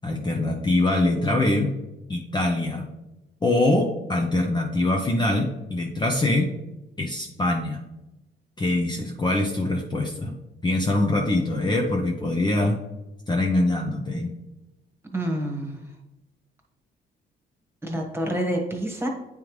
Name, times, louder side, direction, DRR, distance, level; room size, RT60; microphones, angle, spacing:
voice 1, 0.0-1.7 2.1-2.8 3.4-6.5 7.0-7.8 8.6-10.3 10.6-12.8 13.3-14.4, left 2 dB, 20° left, 0 dB, 0.7 m, -23 dB
voice 2, 15.1-15.8 17.8-19.1, right 1 dB, 10° right, 1 dB, 1.4 m, -27 dB
9.4 x 3.4 x 3.1 m, 1.0 s
cardioid pair, 90°, 20 cm